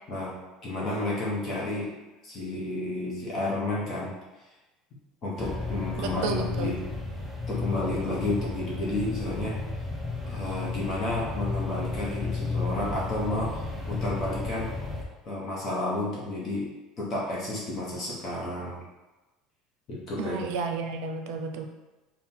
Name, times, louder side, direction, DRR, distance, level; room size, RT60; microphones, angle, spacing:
voice 1, 0.1-1.9 2.2-4.1 5.2-6.8 7.5-9.6 10.3-14.7 15.3-16.7 17.0-18.8 19.9-20.4, left 2 dB, 35° left, -5 dB, 0.8 m, -31 dB
sound 1, 5.4-15.0, left 3 dB, 5° left, 0.5 m, -33 dB
voice 2, 6.0-6.7 20.2-21.7, right 4 dB, 75° right, 5 dB, 0.5 m, -32 dB
3.6 x 2.2 x 4.2 m, 1.1 s
cardioid pair, 160°, 0 cm